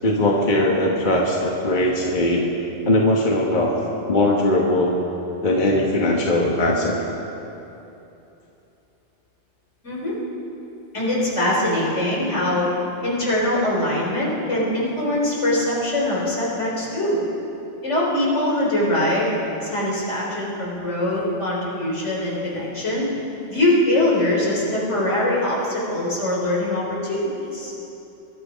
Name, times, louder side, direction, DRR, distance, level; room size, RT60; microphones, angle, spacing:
voice 1, 0.0-2.4 2.9-3.7 4.1-5.0 5.4-7.0, left 1 dB, 40° left, -1 dB, 1.4 m, -20 dB
voice 2, 9.8-10.2 10.9-12.7 13.0-17.2 17.8-19.3 19.6-23.1 23.5-27.7, left 1 dB, 75° left, -5 dB, 4.3 m, -22 dB
23.0 x 11.5 x 5.0 m, 2.9 s
omnidirectional pair, 1.2 m